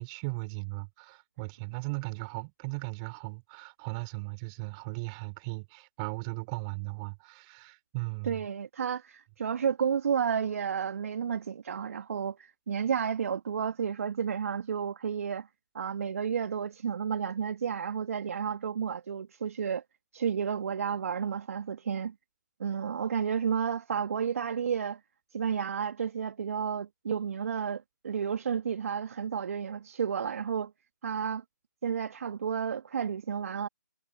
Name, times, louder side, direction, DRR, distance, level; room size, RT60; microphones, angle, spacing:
voice 1, 0.0-8.4, right 30 dB, 20° right, 4.8 m, -37 dB
voice 2, 8.2-15.5 15.7-19.8 20.1-22.1 22.6-25.0 25.3-30.7 31.0-31.4 31.8-33.7, right 7 dB, 45° right, 1.5 m, -31 dB
figure-of-eight pair, 150°, 10 cm